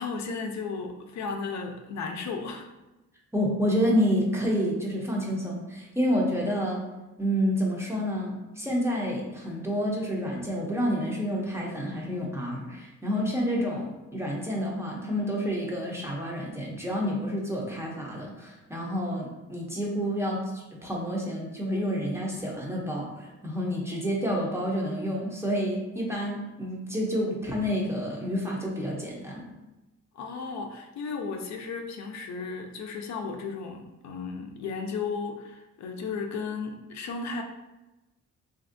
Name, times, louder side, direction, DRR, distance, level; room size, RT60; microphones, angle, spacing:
voice 1, 0.0-2.7 13.2-13.4 30.1-37.4, left 4 dB, 70° left, 3 dB, 0.5 m, -34 dB
voice 2, 3.3-6.8 7.2-29.5, equal, 10° right, -3 dB, 0.5 m, -29 dB
3.4 x 2.5 x 2.5 m, 1.0 s
wide cardioid pair, 145°, 29 cm